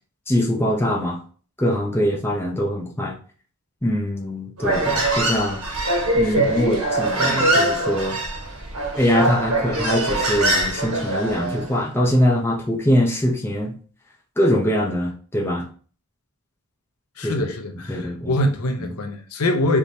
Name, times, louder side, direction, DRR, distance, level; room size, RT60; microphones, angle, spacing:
voice 1, 0.3-1.2 1.6-3.2 3.8-5.6 6.1-8.2 9.0-13.8 14.4-15.6 17.2-17.5 17.9-18.3 18.8-18.9, equal, 10° left, 0.7 m, -22 dB
Human voice, 4.6-11.7, right 1 dB, 80° right, 1.3 m, -22 dB
voice 2, 6.2-6.8 17.2-19.8, left 1 dB, 90° left, 0.8 m, -24 dB
4.5 x 3.5 x 2.7 m
head